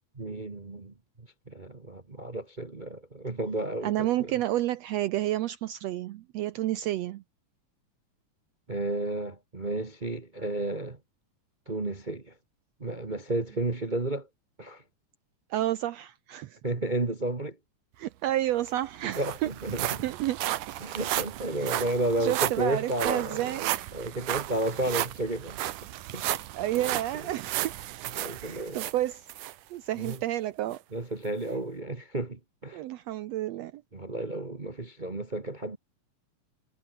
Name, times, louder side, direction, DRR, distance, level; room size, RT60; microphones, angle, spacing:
voice 1, 0.1-4.3 8.7-11.0 11.7-12.3 12.8-14.3 14.6-14.8 16.6-17.6 19.1-20.0 20.8-25.6 26.1-26.4 26.7-27.0 28.2-28.9 30.0-30.2 30.9-32.8 33.9-35.8, right 2 dB, 35° right, 0.7 m, -32 dB
voice 2, 3.8-7.2 15.5-16.6 18.0-19.6 20.0-20.4 21.6-23.7 24.8-24.9 26.5-27.7 28.4-29.2 29.7-30.8 31.5-31.6 32.7-33.8, right 14 dB, 75° right, 1.6 m, -30 dB
sound 1, 18.3-18.4 18.7-29.5 30.0-30.2 30.7-30.8, right 14 dB, 90° right, 2.6 m, -34 dB
omnidirectional pair, 3.5 m